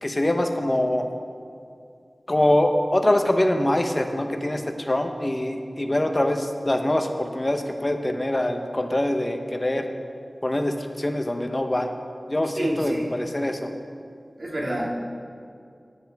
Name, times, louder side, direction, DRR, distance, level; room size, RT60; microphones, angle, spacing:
voice 1, 0.0-1.1 2.3-9.9 10.4-11.9 12.3-13.7, left 1 dB, 35° left, 5 dB, 1.0 m, -24 dB
voice 2, 12.6-13.0 14.4-14.9, right 1 dB, 60° right, -3 dB, 2.2 m, -27 dB
16.0 x 10.5 x 3.5 m, 2.4 s
wide cardioid pair, 50°, 0 cm